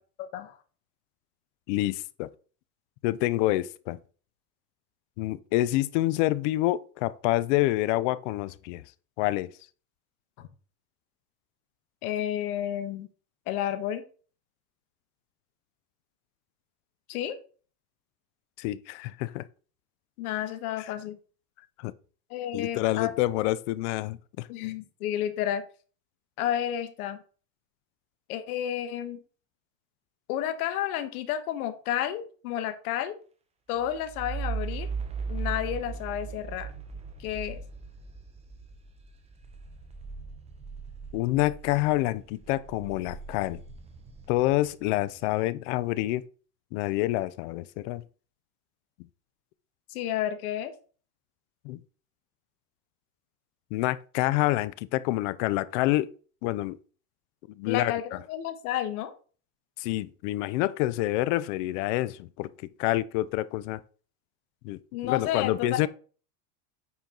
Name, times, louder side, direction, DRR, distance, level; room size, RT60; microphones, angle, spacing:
voice 1, 1.7-2.3 3.0-4.0 5.2-8.8 9.2-9.5 18.6-19.4 21.8-21.9 22.5-24.5 41.1-43.6 44.3-46.2 46.7-48.0 51.6-51.8 53.7-56.1 56.4-56.8 57.6-57.9 59.8-62.5 62.8-63.8 64.6-65.9, left 17 dB, 55° left, 0.5 m, -27 dB
voice 2, 12.0-13.1 13.5-14.0 17.1-17.4 20.2-21.2 22.3-23.1 24.5-25.6 26.4-27.2 28.3-29.2 30.3-33.2 33.7-34.9 35.3-36.7 37.2-37.6 49.9-50.7 57.7-59.1 64.9-65.9, left 11 dB, 70° left, 1.4 m, -31 dB
sound 1, 33.8-42.0 42.4-45.0, right 5 dB, 15° right, 0.8 m, -38 dB
9.3 x 4.5 x 3.8 m
supercardioid pair, 150°, 45 cm